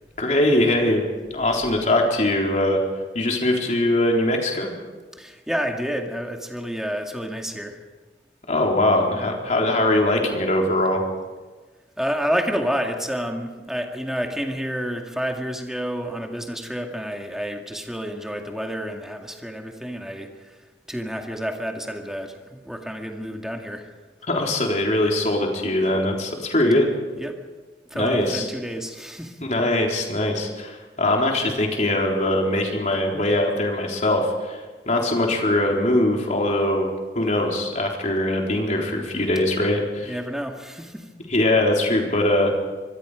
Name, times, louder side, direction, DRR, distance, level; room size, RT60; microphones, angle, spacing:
voice 1, 0.2-1.0 1.3-2.8 3.1-4.7 8.5-11.0 24.3-26.9 27.9-28.5 29.4-34.6 34.9-36.9 37.1-40.1 41.3-42.5, left 1 dB, 40° left, 0 dB, 4.0 m, -21 dB
voice 2, 5.1-7.8 12.0-23.9 27.2-27.4 27.9-29.4 40.0-41.1, equal, 5° right, 2 dB, 2.1 m, -29 dB
25.5 x 21.0 x 5.1 m, 1.3 s
head